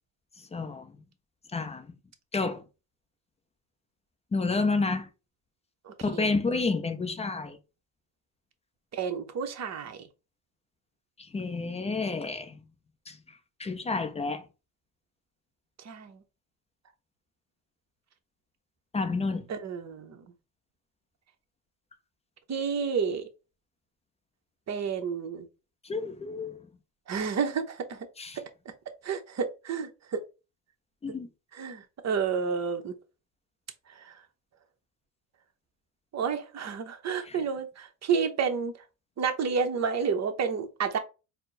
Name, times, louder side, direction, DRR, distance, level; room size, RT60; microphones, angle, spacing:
voice 1, 0.5-0.8 1.5-1.8 2.3-2.6 4.3-5.1 6.0-7.6 11.3-12.5 13.6-14.4 18.9-19.4 25.9-26.6 28.2-28.4 31.0-31.3 37.3-37.4, left 3 dB, 15° left, 0.4 m, -29 dB
voice 2, 5.9-6.3 8.9-10.0 15.8-16.2 19.5-20.2 22.5-23.2 24.7-25.5 27.1-28.0 29.0-30.2 31.5-32.9 36.1-38.7 39.2-41.0, right 6 dB, 35° right, 0.7 m, -30 dB
4.3 x 2.1 x 3.8 m
cardioid pair, 130°, 47 cm